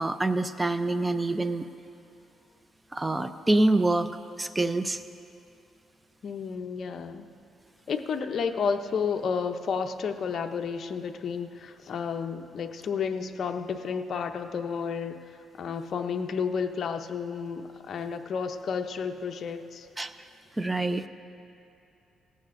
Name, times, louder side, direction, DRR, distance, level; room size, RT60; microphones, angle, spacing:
voice 1, 0.0-1.7 2.9-4.1 4.4-5.0 20.0-20.1 20.6-21.1, right 2 dB, 15° right, 11 dB, 0.6 m, -26 dB
voice 2, 6.2-7.3 7.9-19.9, left 6 dB, 55° left, 6 dB, 0.6 m, -31 dB
18.0 x 14.5 x 2.6 m, 2.8 s
cardioid pair, 90°, 0 cm